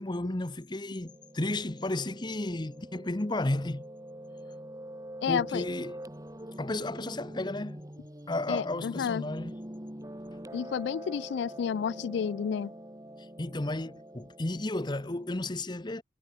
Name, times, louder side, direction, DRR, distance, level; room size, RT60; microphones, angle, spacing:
voice 1, 0.0-3.8 5.3-6.0 6.6-7.8 8.3-9.5 13.2-16.0, left 2 dB, 25° left, 0.8 m, -33 dB
Piano, 1.0-15.5, right 1 dB, 20° right, 3.8 m, -45 dB
voice 2, 5.2-5.7 8.5-9.2 10.5-12.7, left 7 dB, 65° left, 0.3 m, -31 dB
head